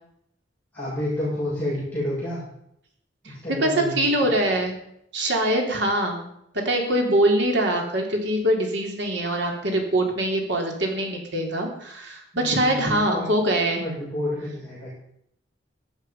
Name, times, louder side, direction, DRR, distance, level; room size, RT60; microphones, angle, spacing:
voice 1, 0.7-2.4 3.2-4.0 12.3-13.3 13.8-14.9, left 1 dB, 10° left, -9 dB, 7.2 m, -29 dB
voice 2, 3.6-4.8 5.1-6.3 6.6-13.8, right 1 dB, 65° right, 1 dB, 3.6 m, -23 dB
16.0 x 12.0 x 5.6 m, 0.74 s
head